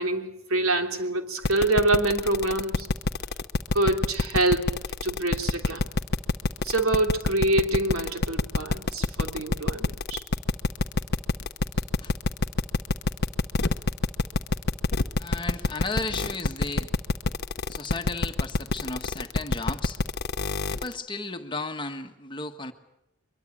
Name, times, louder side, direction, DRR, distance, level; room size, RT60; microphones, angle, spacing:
voice 1, 0.0-2.9 3.7-4.7 5.0-5.9 6.6-10.2, right 2 dB, 85° right, 5 dB, 3.0 m, -25 dB
sound 1, 1.4-20.9, left 2 dB, 50° left, 0.9 m, -26 dB
voice 2, 15.2-16.9 17.7-20.0 20.7-22.7, left 3 dB, 25° left, 6 dB, 1.6 m, -34 dB
23.5 x 22.5 x 8.7 m, 0.85 s
head